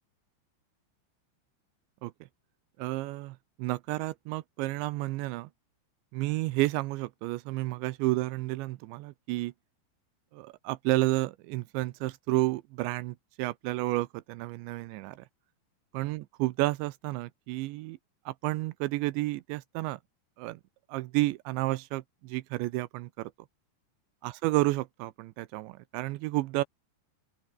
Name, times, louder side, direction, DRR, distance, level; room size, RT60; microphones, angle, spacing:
voice 1, 2.8-5.5 6.1-9.5 10.3-15.3 15.9-18.0 18.3-20.0 20.4-20.6 20.9-23.3 24.2-26.6, right 19 dB, 85° right, 3.1 m, -31 dB
open air
omnidirectional pair, 5.1 m